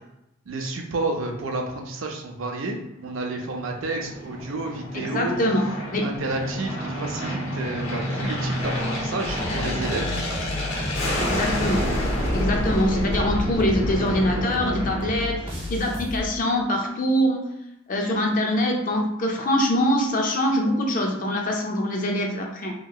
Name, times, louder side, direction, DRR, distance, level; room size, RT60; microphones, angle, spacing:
voice 1, 0.5-5.4 6.0-10.2, right 2 dB, 80° right, 2 dB, 0.5 m, -30 dB
Aircraft, 3.2-15.9, equal, 85° left, 0.8 m, -29 dB
voice 2, 4.9-6.1 11.2-11.9 12.3-17.5 17.9-22.7, equal, 40° left, 1 dB, 0.4 m, -24 dB
sound 1, 9.2-16.2, left 2 dB, 30° right, 0.5 m, -33 dB
2.9 x 2.8 x 2.3 m, 0.83 s
head